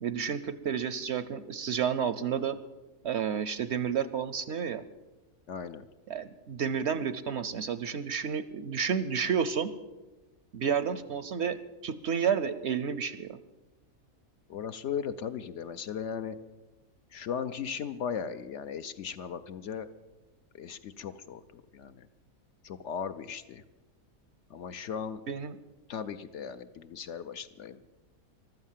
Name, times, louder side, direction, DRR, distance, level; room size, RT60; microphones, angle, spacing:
voice 1, 0.0-2.6 3.0-4.8 6.1-9.7 10.5-11.6 11.8-13.4 25.3-25.5, right 7 dB, 60° right, 14 dB, 0.8 m, -30 dB
voice 2, 5.5-5.9 14.5-16.4 17.1-19.9 20.5-22.1 22.6-23.6 24.5-25.2 25.9-27.8, left 7 dB, 60° left, 10 dB, 0.9 m, -37 dB
15.0 x 12.0 x 7.4 m, 1.1 s
omnidirectional pair, 1.5 m